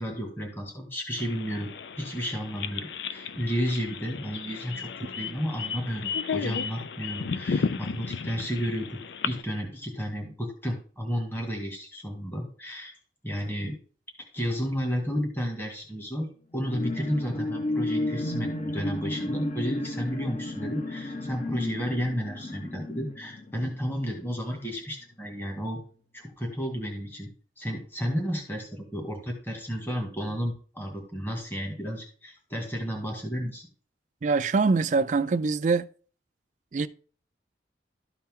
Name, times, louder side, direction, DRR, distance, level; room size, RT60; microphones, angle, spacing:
voice 1, 0.0-1.7 2.0-4.9 5.2-8.9 9.2-12.9 13.2-13.8 14.3-25.8 26.1-27.3 27.6-33.7, equal, 15° left, 1.9 m, -32 dB
sound 1, 1.2-9.4, left 5 dB, 80° left, 0.4 m, -34 dB
sound 2, 16.5-24.3 24.8-24.9, left 1 dB, 40° left, 1.0 m, -33 dB
voice 2, 34.2-35.9 36.7-36.9, right 4 dB, 45° right, 0.4 m, -24 dB
12.5 x 4.3 x 3.7 m
head